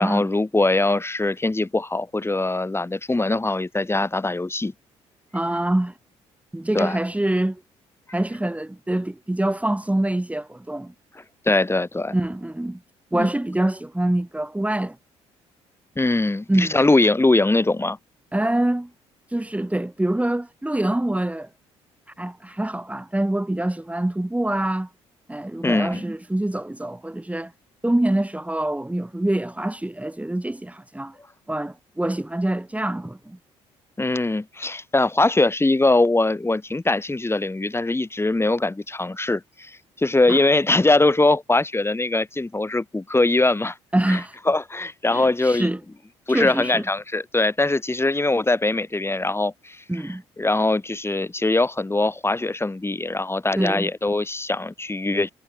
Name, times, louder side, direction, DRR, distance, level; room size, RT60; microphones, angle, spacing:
voice 1, 0.0-4.7 6.7-7.0 11.4-12.1 13.1-13.3 16.0-18.0 25.6-26.0 34.0-39.7 40.0-43.8 44.1-44.2 44.5-45.7 46.3-49.8 50.4-55.3, left 2 dB, 15° left, 4.7 m, -22 dB
voice 2, 5.3-5.9 6.5-7.6 8.1-10.9 12.1-12.8 13.1-15.0 16.5-16.9 18.3-18.9 19.3-21.5 22.2-24.9 25.3-27.5 27.8-31.1 31.5-33.4 40.3-40.4 43.9-44.4 45.1-45.8 46.3-46.8 49.9-50.2 53.6-53.9, right 1 dB, 10° right, 5.3 m, -25 dB
hypercardioid pair, 50°, 14 cm